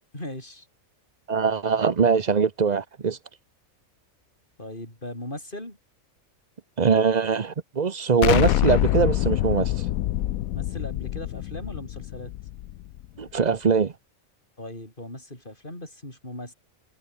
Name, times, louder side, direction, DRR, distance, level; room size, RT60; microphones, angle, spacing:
voice 1, 0.1-0.7 4.6-5.8 10.5-12.3 14.6-16.5, left 1 dB, 35° left, 7.2 m, -38 dB
voice 2, 1.3-3.2 6.8-9.9 13.2-13.9, right 5 dB, 35° right, 0.8 m, -22 dB
Explosion, 8.2-13.0, left 14 dB, 85° left, 1.1 m, -25 dB
omnidirectional pair, 1.4 m